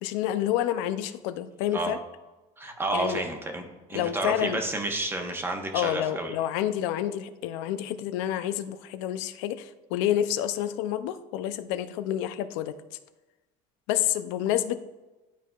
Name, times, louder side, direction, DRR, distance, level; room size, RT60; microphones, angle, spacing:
voice 1, 0.0-2.0 2.9-3.2 3.9-4.6 5.7-12.7 13.9-14.8, left 11 dB, 90° left, 12 dB, 0.5 m, -28 dB
voice 2, 2.6-6.3, right 2 dB, 15° right, 3 dB, 0.9 m, -30 dB
11.0 x 4.5 x 2.4 m, 1.1 s
cardioid pair, 140°, 15 cm